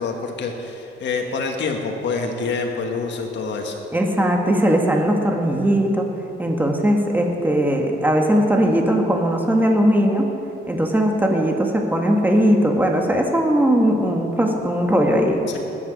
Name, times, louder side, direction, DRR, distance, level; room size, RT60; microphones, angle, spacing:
voice 1, 0.0-3.7, left 4 dB, 65° left, 2 dB, 1.5 m, -26 dB
voice 2, 3.9-6.1 6.4-10.3 10.7-15.4, equal, 10° right, 1 dB, 2.0 m, -19 dB
19.5 x 7.4 x 6.4 m, 2.8 s
cardioid pair, 90°, 20 cm